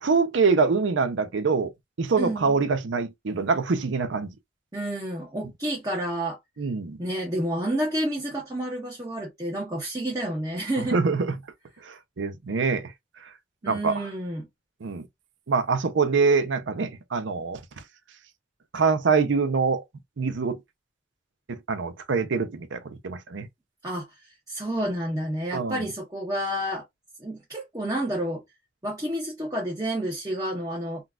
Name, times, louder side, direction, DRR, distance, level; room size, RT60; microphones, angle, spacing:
voice 1, 0.0-1.7 2.0-4.3 6.6-7.0 10.9-11.3 11.8-12.9 13.7-14.1 14.8-15.0 15.5-17.6 18.7-19.8 20.2-20.6 21.5-23.5 25.5-25.9, right 4 dB, 90° right, 0.6 m, -24 dB
voice 2, 2.2-2.5 4.7-6.4 7.0-11.0 13.6-14.5 23.8-24.1 24.5-26.8 27.2-28.4 28.8-31.1, right 1 dB, 20° right, 0.8 m, -30 dB
3.7 x 2.3 x 2.3 m
head